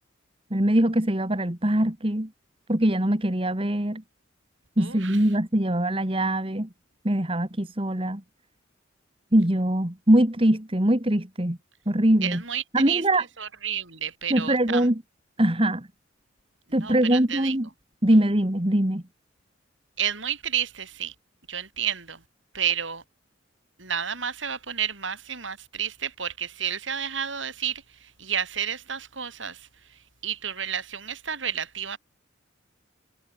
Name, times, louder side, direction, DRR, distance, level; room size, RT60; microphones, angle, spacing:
voice 1, 0.5-2.3 2.7-4.0 4.8-6.7 7.0-8.2 9.3-11.6 11.9-12.4 12.7-13.2 14.3-15.0 15.4-15.9 16.7-17.7 18.0-19.0, right 1 dB, 30° right, 2.1 m, -22 dB
voice 2, 4.8-5.2 12.2-13.0 13.4-14.9 16.7-17.5 20.0-21.1 21.5-22.2 22.5-23.0 23.8-29.7 30.2-32.0, right 8 dB, 75° right, 7.7 m, -31 dB
head